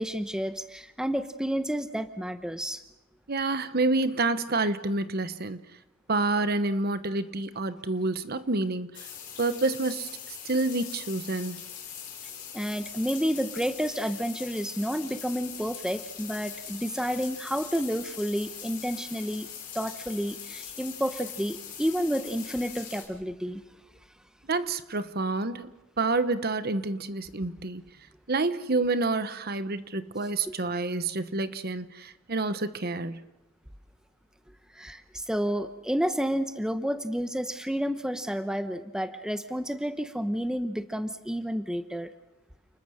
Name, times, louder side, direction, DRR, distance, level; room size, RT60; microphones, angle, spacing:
voice 1, 0.0-2.8 12.5-19.5 19.7-23.6 30.6-30.7 34.7-42.1, equal, 5° right, 9 dB, 1.0 m, -30 dB
voice 2, 3.3-5.6 6.1-9.1 9.4-10.2 10.4-11.6 24.5-25.7 26.0-27.8 28.3-33.3, right 3 dB, 50° right, 12 dB, 1.1 m, -28 dB
sound 1, 8.9-23.0, left 8 dB, 40° left, 6.6 m, -42 dB
30.0 x 21.0 x 6.5 m, 0.95 s
head